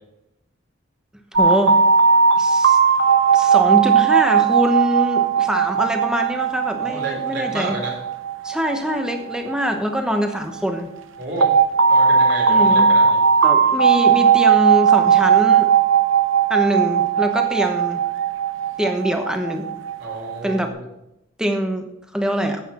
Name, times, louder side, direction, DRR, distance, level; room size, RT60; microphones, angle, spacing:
voice 1, 1.3-1.8 2.4-2.8 3.3-7.8 8.4-10.9 12.5-12.9 13.4-15.7 16.5-18.0 18.8-19.7 20.4-20.7 21.4-21.9 22.1-22.6, equal, 5° right, 5 dB, 0.9 m, -23 dB
sound 1, 1.4-10.2 11.4-20.6, right 6 dB, 70° right, 0.8 m, -17 dB
voice 2, 6.8-8.0 11.2-11.5 11.8-13.2 20.0-20.9, right 2 dB, 55° right, -2 dB, 3.7 m, -30 dB
9.9 x 8.3 x 4.3 m, 0.86 s
head